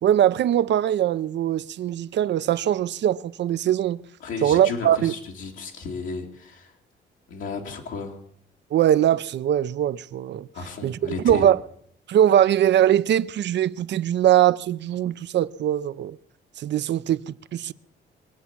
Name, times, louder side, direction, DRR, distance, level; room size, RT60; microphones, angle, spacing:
voice 1, 0.0-4.0 4.4-5.1 8.7-10.5 10.8-11.6 12.1-16.2 16.6-17.7, right 11 dB, 65° right, 0.6 m, -21 dB
voice 2, 4.2-6.7 7.3-8.2 10.5-11.5, left 4 dB, 85° left, 2.5 m, -33 dB
23.5 x 8.3 x 7.3 m
cardioid pair, 90°, 20 cm